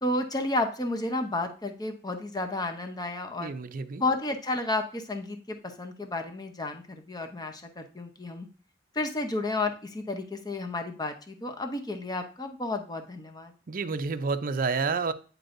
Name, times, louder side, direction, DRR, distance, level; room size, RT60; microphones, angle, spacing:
voice 1, 0.0-3.5 4.0-8.5 8.9-13.5, left 2 dB, 20° left, 5 dB, 0.8 m, -32 dB
voice 2, 3.4-4.0 13.7-15.1, right 4 dB, 45° right, 10 dB, 0.5 m, -29 dB
9.4 x 4.6 x 2.6 m, 0.38 s
head